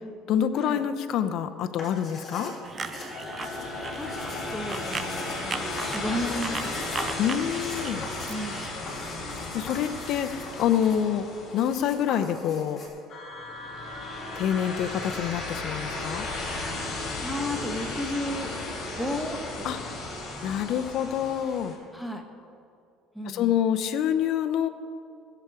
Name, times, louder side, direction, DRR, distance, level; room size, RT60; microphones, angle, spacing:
voice 1, 0.3-2.5 7.2-8.0 9.5-11.3 11.5-12.8 14.4-16.3 19.6-19.8 20.4-21.7 23.2-24.7, left 9 dB, 60° left, 9 dB, 0.7 m, -26 dB
sound 1, 1.7-12.9, left 2 dB, 20° left, 3.3 m, -41 dB
sound 2, 2.6-8.7, right 5 dB, 25° right, 0.5 m, -38 dB
sound 3, 3.1-12.3 13.1-21.8, left 2 dB, 40° left, 3.1 m, -35 dB
voice 2, 4.5-6.9 8.3-8.7 17.2-18.5 18.9-19.9 21.9-22.2 23.1-23.6, left 1 dB, ahead, 3 dB, 1.2 m, -34 dB
16.5 x 7.1 x 4.8 m, 2.5 s
cardioid pair, 125°, 0 cm